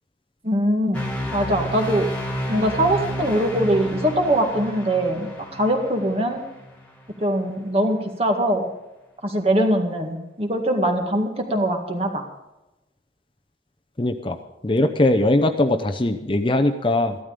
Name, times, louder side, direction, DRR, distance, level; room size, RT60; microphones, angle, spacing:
voice 1, 0.4-1.0 1.3-2.1 2.5-6.4 7.2-8.7 9.2-12.2, right 1 dB, 35° right, 3 dB, 1.9 m, -22 dB
sound 1, 0.9-7.1, equal, 10° left, 2.2 m, -31 dB
voice 2, 14.0-14.4 14.6-17.2, left 1 dB, 30° left, 6 dB, 0.7 m, -20 dB
14.5 x 12.5 x 5.2 m, 0.98 s
head